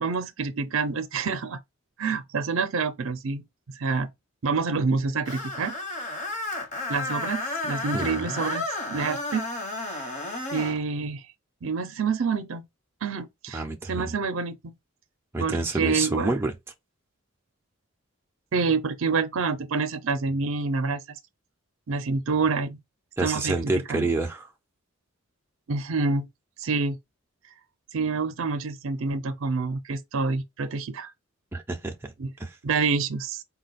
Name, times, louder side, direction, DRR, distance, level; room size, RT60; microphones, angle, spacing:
voice 1, 0.0-1.6 2.0-3.4 3.8-4.1 4.4-5.7 6.0-6.1 6.9-9.5 9.8-10.2 10.5-11.2 11.6-12.7 13.0-13.6 13.9-14.7 15.4-16.3 18.5-21.0 21.9-22.8 23.2-23.6 23.9-24.1 25.7-26.3 26.6-27.0 27.9-31.1 32.2-32.3 32.6-33.4, right 4 dB, 65° right, 0.5 m, -27 dB
Screech, 5.3-10.8, left 2 dB, 35° left, 1.1 m, -32 dB
voice 2, 7.9-8.4 13.5-14.1 15.3-16.5 23.2-24.5 31.5-32.1 32.4-32.6, right 2 dB, 10° right, 0.5 m, -28 dB
4.0 x 2.3 x 4.0 m
head